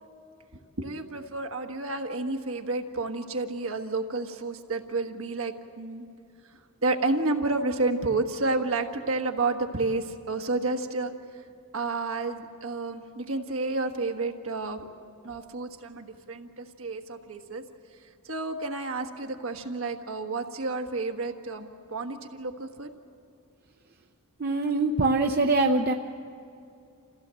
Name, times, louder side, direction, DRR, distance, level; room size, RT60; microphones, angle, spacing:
voice 1, 0.5-6.0 6.8-11.4 11.7-14.9 15.2-17.6 18.0-22.9, right 3 dB, 70° right, 4 dB, 1.5 m, -30 dB
voice 2, 24.4-25.9, right 2 dB, 45° right, 4 dB, 0.6 m, -23 dB
27.5 x 16.0 x 7.7 m, 2.5 s
head